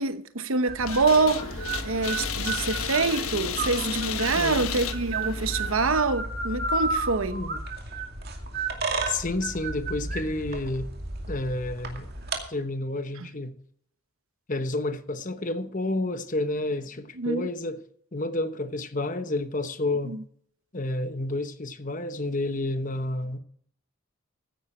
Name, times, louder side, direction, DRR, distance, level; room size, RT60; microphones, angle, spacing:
voice 1, 0.0-7.4 17.2-17.5 20.1-20.2, right 3 dB, 70° right, 1.0 m, -26 dB
sound 1, 0.7-12.4, right 2 dB, 45° right, 2.4 m, -33 dB
sound 2, 0.9-5.9, left 7 dB, 80° left, 1.4 m, -33 dB
voice 2, 9.1-10.9 11.3-12.1 12.5-13.6 14.5-17.8 18.1-20.2 20.7-23.4, left 2 dB, 35° left, 1.0 m, -30 dB
15.5 x 9.5 x 4.4 m
head